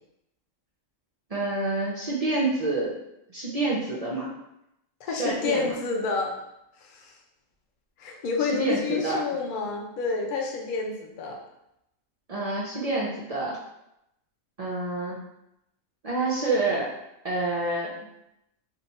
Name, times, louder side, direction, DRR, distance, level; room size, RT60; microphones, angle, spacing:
voice 1, 1.3-2.9 3.3-4.3 5.1-5.7 8.5-9.2 12.3-13.6 14.6-15.2 16.0-16.9 17.2-17.9, right 2 dB, 60° right, -5 dB, 0.3 m, -27 dB
voice 2, 5.0-6.3 6.8-7.2 8.0-11.4, left 4 dB, 55° left, 1 dB, 0.6 m, -29 dB
2.8 x 2.3 x 4.1 m, 0.84 s
omnidirectional pair, 1.4 m